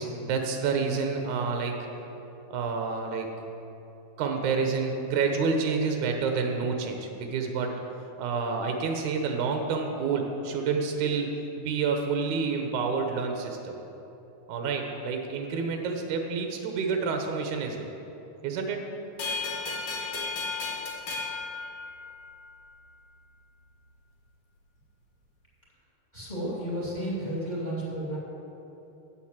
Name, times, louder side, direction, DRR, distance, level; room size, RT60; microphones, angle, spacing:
voice 1, 0.0-1.9 2.5-3.3 4.2-7.7 8.2-13.8 14.5-17.9 18.4-18.8, right 5 dB, 75° right, 3 dB, 1.8 m, -29 dB
sound 1, 19.2-22.4, left 4 dB, 60° left, 2.8 m, -34 dB
voice 2, 26.1-28.2, right 1 dB, 15° left, -7 dB, 1.7 m, -32 dB
8.9 x 8.1 x 7.3 m, 2.9 s
omnidirectional pair, 4.5 m